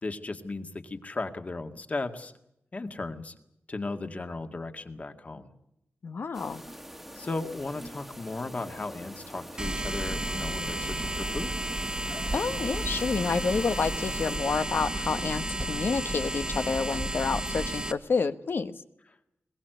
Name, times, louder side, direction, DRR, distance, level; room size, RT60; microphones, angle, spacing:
voice 1, 0.0-2.3 2.7-3.3 3.7-5.5 7.1-11.5, left 3 dB, 35° left, 7 dB, 2.0 m, -36 dB
voice 2, 6.0-6.6 12.3-18.7, left 4 dB, 60° left, 10 dB, 1.2 m, -29 dB
sound 1, 6.3-14.4, equal, 5° right, 1.7 m, -45 dB
sound 2, 9.6-17.9, right 1 dB, 20° right, 1.4 m, -32 dB
22.0 x 21.0 x 8.0 m, 0.80 s
wide cardioid pair, 135°, 4 cm